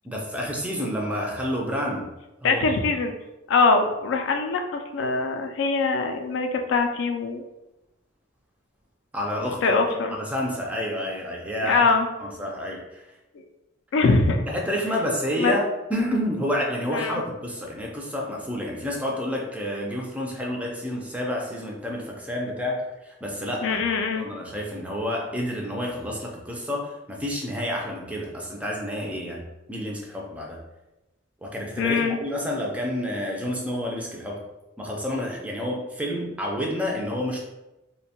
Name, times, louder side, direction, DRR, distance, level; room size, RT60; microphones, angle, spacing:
voice 1, 0.0-2.1 2.4-2.8 9.1-9.8 10.1-11.9 12.2-13.0 14.5-23.8 24.2-29.4 29.7-30.6 31.4-34.4 34.8-37.4, equal, 5° right, -1 dB, 0.3 m, -29 dB
voice 2, 2.4-3.1 3.5-7.4 9.6-10.1 11.6-12.1 13.9-14.4 15.4-15.6 16.9-17.2 23.6-24.3 31.8-32.2, left 4 dB, 70° left, 5 dB, 0.3 m, -22 dB
2.6 x 2.1 x 2.8 m, 0.98 s
head